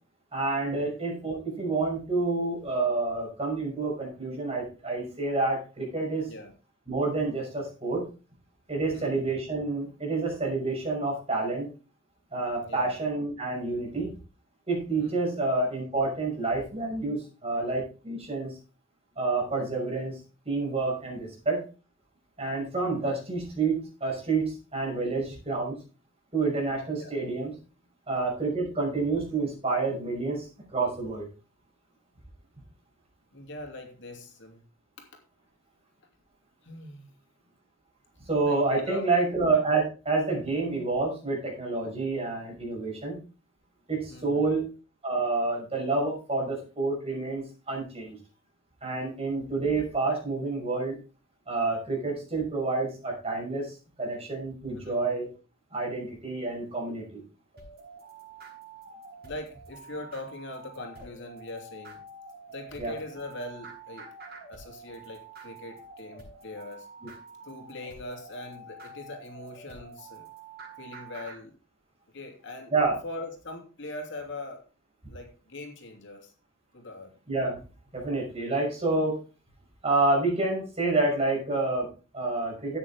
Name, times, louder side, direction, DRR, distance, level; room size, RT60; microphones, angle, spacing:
voice 1, 0.3-6.3 6.9-8.0 8.7-11.7 12.3-14.1 14.7-18.5 19.2-20.2 20.5-21.7 22.4-25.8 26.3-27.5 28.1-31.3 38.2-43.2 43.9-44.6 45.0-48.2 48.8-51.0 51.5-55.3 55.7-57.2 62.8-62.9 67.0-67.1 72.7-73.0 77.3-77.6 77.9-79.2 79.8-82.8, right 3 dB, 30° right, -1 dB, 6.0 m, -28 dB
voice 2, 12.6-13.0 15.0-15.1 27.0-27.2 33.3-34.6 35.0-35.1 36.6-37.1 38.5-39.0 44.1-44.5 54.7-55.0 59.2-62.0 62.5-64.1 64.5-66.9 67.4-70.3 70.8-71.5 72.1-72.7 73.0-74.6 75.1-76.3 76.7-77.1, left 2 dB, 65° left, 3 dB, 2.9 m, -41 dB
sound 1, 57.5-71.4, right 3 dB, 55° right, 6.4 m, -47 dB
13.0 x 9.1 x 3.6 m, 0.34 s
head